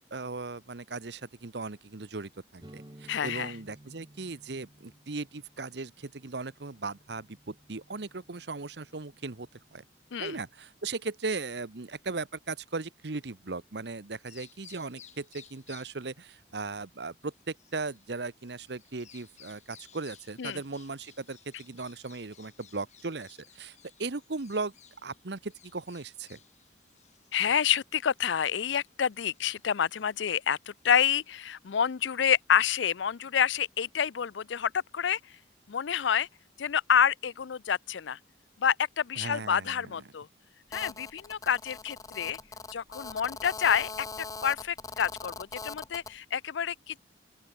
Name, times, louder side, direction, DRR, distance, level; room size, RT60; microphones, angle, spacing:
voice 1, 0.0-9.8 10.2-24.7 25.0-26.4 39.2-40.0, right 3 dB, 65° right, 1.0 m, -38 dB
sound 1, 2.6-10.2, right 1 dB, 25° right, 1.1 m, -56 dB
voice 2, 3.1-3.5 10.1-10.4 20.4-20.6 27.3-35.2 35.7-36.3 36.6-38.2 38.6-40.3 40.7-42.4 42.7-44.1 44.4-47.1, left 8 dB, 80° left, 0.5 m, -28 dB
Bird vocalization bird call bird song, 14.1-31.5, left 9 dB, 40° left, 3.8 m, -59 dB
Telephone, 40.7-46.1, left 4 dB, 20° left, 0.8 m, -41 dB
open air
head